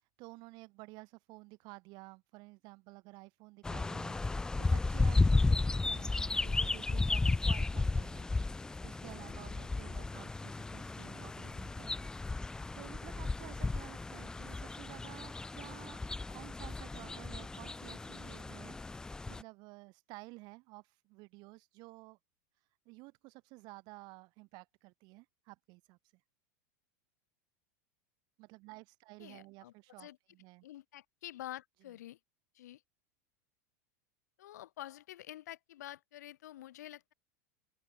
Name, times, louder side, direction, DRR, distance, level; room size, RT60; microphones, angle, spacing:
voice 1, 0.2-8.3 8.8-12.1 12.7-16.0 16.3-22.2 22.9-26.0 28.4-30.7, right 25 dB, 55° right, 7.5 m, -53 dB
sound 1, 3.6-19.4, left 3 dB, 10° left, 0.4 m, -34 dB
voice 2, 29.2-30.2 30.6-32.2 32.5-32.8 34.4-37.1, left 13 dB, 85° left, 3.0 m, -48 dB
open air
supercardioid pair, 125°, 9 cm